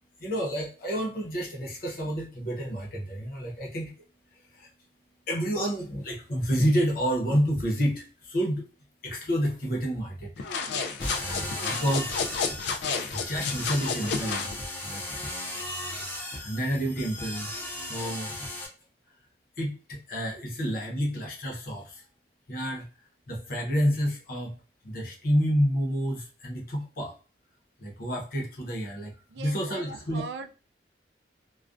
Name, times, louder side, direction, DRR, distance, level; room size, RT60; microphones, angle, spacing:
voice 1, 0.2-3.9 4.3-4.7 5.3-8.6 9.0-10.3 10.7-10.9 11.1-12.2 13.1-14.5 14.8-15.0 16.3-17.5 17.8-18.4 19.6-22.0 22.5-22.9 23.3-24.5 24.8-27.1 27.8-30.2, equal, 55° left, -1 dB, 0.7 m, -29 dB
sound 1, 10.4-14.5, left 5 dB, 70° left, 0.3 m, -31 dB
sound 2, 11.0-18.7, left 1 dB, 10° left, 0.5 m, -36 dB
voice 2, 29.3-30.5, right 4 dB, 70° right, 8 dB, 0.3 m, -40 dB
2.3 x 2.1 x 2.4 m, 0.35 s
head